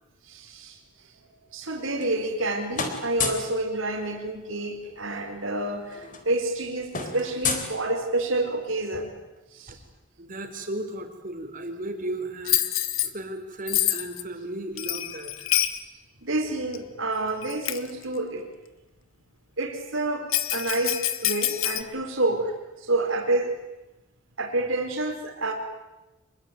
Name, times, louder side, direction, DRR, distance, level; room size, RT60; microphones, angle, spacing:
voice 1, 0.3-0.7 1.5-6.0 6.3-9.1 9.6-9.7 16.2-18.4 19.6-22.5 22.9-23.5 24.4-25.5, right 2 dB, 70° right, 3 dB, 4.3 m, -28 dB
sound 1, 1.7-2.5 2.7-3.6 4.9-5.0 5.3-5.5 5.8-8.4, left 4 dB, 40° left, 3.9 m, -32 dB
voice 2, 10.2-12.6 13.0-15.5, right 1 dB, 45° right, 6 dB, 4.0 m, -35 dB
Bell, 12.5-13.1 13.7-14.2 14.8-15.8 16.7-16.8 17.4-17.9 20.3-21.8, left 13 dB, 80° left, 1.5 m, -26 dB
26.5 x 22.0 x 9.3 m, 1.0 s
head